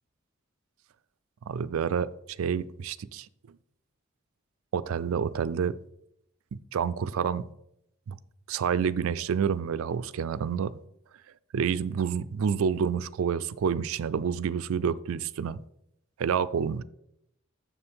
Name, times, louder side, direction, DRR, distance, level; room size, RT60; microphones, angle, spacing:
voice 1, 1.5-2.1 2.4-3.6 4.7-5.7 6.7-7.4 8.1-8.2 8.5-10.7 11.5-15.6 16.2-16.8, right 7 dB, 70° right, 16 dB, 0.3 m, -28 dB
7.0 x 6.9 x 3.5 m, 0.77 s
head